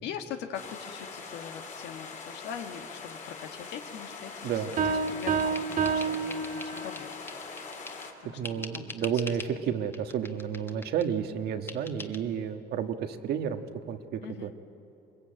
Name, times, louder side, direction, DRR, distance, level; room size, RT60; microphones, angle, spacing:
voice 1, 0.0-7.1 8.2-9.9 14.2-14.6, left 8 dB, 85° left, 5 dB, 1.7 m, -42 dB
sound 1, 0.5-8.1, left 5 dB, 50° left, 3.5 m, -42 dB
sound 2, 4.4-8.1 8.4-9.6 9.9-11.1 11.7-12.2, left 2 dB, 15° left, 1.4 m, -44 dB
Piano, 4.8-7.1, right 5 dB, 50° right, 2.4 m, -29 dB
voice 2, 8.3-13.6 13.9-14.5, right 8 dB, 70° right, 7 dB, 1.5 m, -31 dB
23.5 x 21.5 x 8.9 m, 3.0 s
cardioid pair, 110°, 17 cm